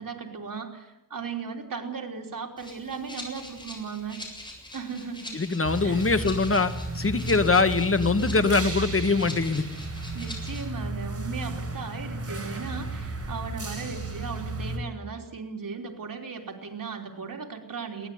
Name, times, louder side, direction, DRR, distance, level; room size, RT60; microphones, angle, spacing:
voice 1, 0.0-4.2 4.7-5.4 5.8-6.0 10.1-18.1, right 5 dB, 80° right, 2 dB, 3.5 m, -37 dB
Rattle (instrument), 2.6-10.7, left 1 dB, 15° left, 7.5 m, -43 dB
voice 2, 5.3-9.6, left 3 dB, 40° left, 10 dB, 1.6 m, -23 dB
sound 1, 5.6-14.8, right 2 dB, 45° right, 5.2 m, -34 dB
22.0 x 18.5 x 9.5 m, 0.92 s
wide cardioid pair, 90°, 33 cm